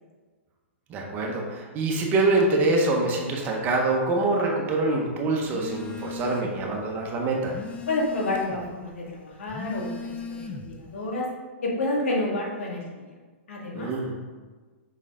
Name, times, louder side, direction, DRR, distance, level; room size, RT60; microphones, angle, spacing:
voice 1, 0.9-7.5 13.7-14.0, right 2 dB, 30° right, 0 dB, 1.3 m, -25 dB
Telephone, 5.4-6.7 7.1-8.7 9.4-10.9, left 4 dB, 15° left, 0.6 m, -37 dB
voice 2, 7.9-11.3 11.6-13.0 13.5-13.9, left 2 dB, 75° left, -2 dB, 2.0 m, -29 dB
6.2 x 5.6 x 3.7 m, 1.4 s
hypercardioid pair, 130°, 7 cm